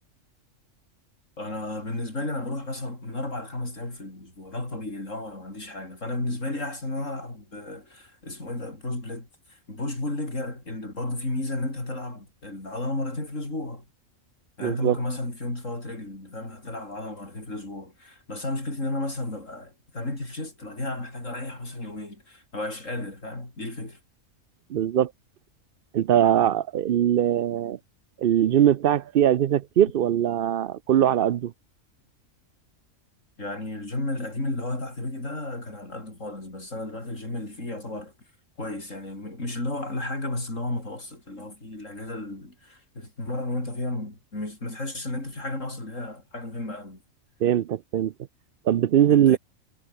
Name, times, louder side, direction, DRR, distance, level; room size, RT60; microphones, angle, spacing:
voice 1, 1.4-13.9 14.6-24.0 33.4-38.1 38.6-47.0 49.1-49.4, left 2 dB, 65° left, 6.6 m, -33 dB
voice 2, 14.6-15.0 24.7-25.1 25.9-27.8 28.2-31.5 47.4-48.1 48.7-49.4, right 10 dB, 60° right, 0.6 m, -21 dB
omnidirectional pair, 1.4 m